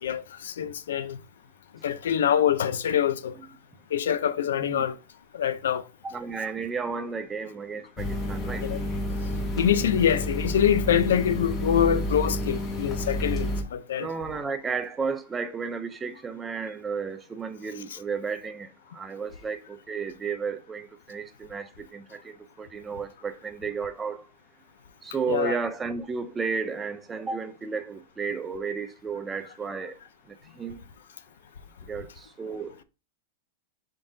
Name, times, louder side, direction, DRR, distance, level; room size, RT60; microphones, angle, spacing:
voice 1, 0.0-1.2 1.8-3.3 3.9-5.0 5.3-5.9 8.6-8.8 9.6-14.1 17.9-18.0 25.3-25.6, left 9 dB, 90° left, 0.5 m, -25 dB
voice 2, 6.0-8.7 14.0-18.7 18.9-24.3 25.0-30.0 30.3-30.8 31.9-32.8, right 5 dB, 15° right, 0.4 m, -33 dB
sound 1, 8.0-13.6, left 1 dB, 30° left, 0.9 m, -30 dB
4.7 x 3.8 x 2.6 m
supercardioid pair, 150°, 0 cm